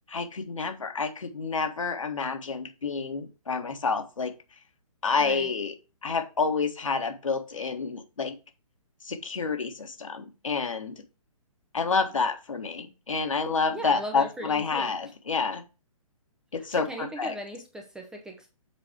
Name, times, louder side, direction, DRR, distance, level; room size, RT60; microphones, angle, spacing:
voice 1, 0.1-4.3 5.0-5.7 6.0-8.3 9.0-11.0 11.7-15.6 16.5-17.3, left 4 dB, 65° left, 6 dB, 1.5 m, -29 dB
voice 2, 5.2-5.5 13.7-14.9 16.6-18.5, right 1 dB, 5° right, 3 dB, 0.8 m, -39 dB
7.6 x 4.6 x 4.7 m, 0.30 s
figure-of-eight pair, 130°, 18 cm